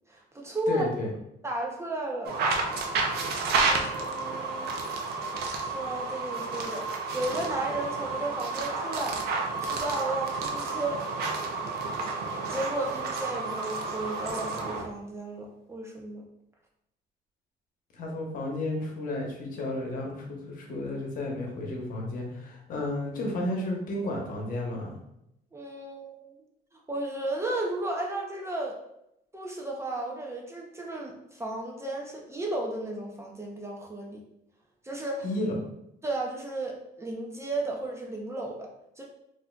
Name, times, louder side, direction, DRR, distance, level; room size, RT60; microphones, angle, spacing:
voice 1, 0.1-0.9 1.4-2.4 3.6-4.8 5.7-6.9 7.1-9.2 9.6-11.0 12.5-16.2 25.5-26.2 26.9-28.8 29.3-34.2 34.8-35.3 36.0-38.7 39.0-39.1, right 2 dB, 15° right, 0 dB, 0.5 m, -34 dB
voice 2, 0.7-1.1 3.0-3.1 17.9-24.9 35.2-35.5, left 1 dB, 55° left, 0 dB, 0.9 m, -32 dB
sound 1, 2.2-14.9, right 4 dB, 70° right, 0.6 m, -31 dB
4.0 x 2.6 x 2.2 m, 0.80 s
cardioid pair, 110°, 17 cm